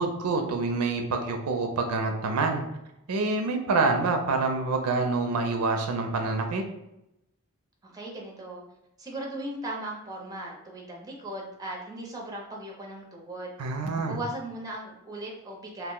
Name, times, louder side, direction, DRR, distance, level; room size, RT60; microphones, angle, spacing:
voice 1, 0.0-2.6 3.1-6.6 13.6-14.2, right 3 dB, 75° right, 4 dB, 0.4 m, -26 dB
voice 2, 7.8-8.6 9.0-13.5 14.1-15.9, right 1 dB, 15° right, -1 dB, 0.5 m, -37 dB
2.4 x 2.0 x 3.7 m, 0.86 s
head